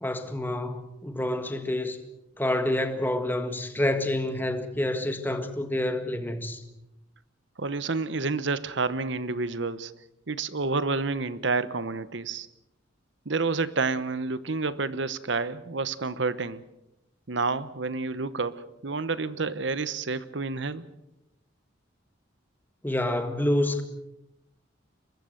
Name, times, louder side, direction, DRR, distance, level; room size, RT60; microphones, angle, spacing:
voice 1, 0.0-2.0 2.4-6.6 22.8-23.8, left 1 dB, 10° left, 1.7 m, -28 dB
voice 2, 7.6-9.9 10.3-12.5 13.3-16.6 17.3-20.9, right 3 dB, 65° right, 1.0 m, -29 dB
23.5 x 21.0 x 6.6 m
head